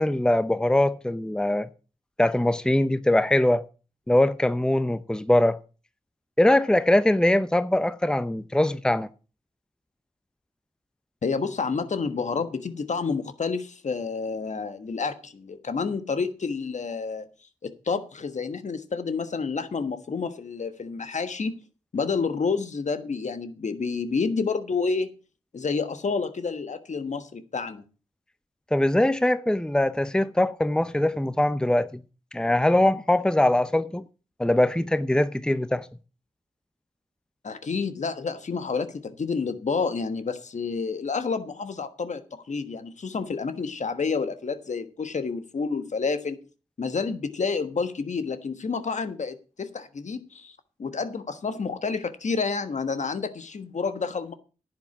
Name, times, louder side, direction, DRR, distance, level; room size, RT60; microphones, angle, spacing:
voice 1, 0.0-1.7 2.2-3.6 4.1-5.6 6.4-9.1 28.7-32.0 32.3-34.0 34.4-35.9, left 1 dB, 5° left, 0.7 m, -22 dB
voice 2, 11.2-17.2 17.6-21.6 21.9-25.1 25.5-27.8 37.4-46.4 46.8-54.3, left 4 dB, 70° left, 1.4 m, -29 dB
10.5 x 8.0 x 6.0 m
cardioid pair, 40°, 13 cm